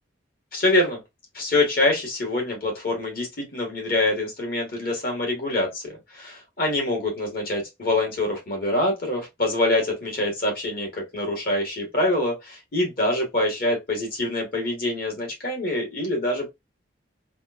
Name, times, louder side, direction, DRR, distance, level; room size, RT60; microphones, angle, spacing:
voice 1, 0.5-1.0 1.3-16.5, left 2 dB, 50° left, 1.7 m, -25 dB
3.6 x 2.4 x 2.5 m
head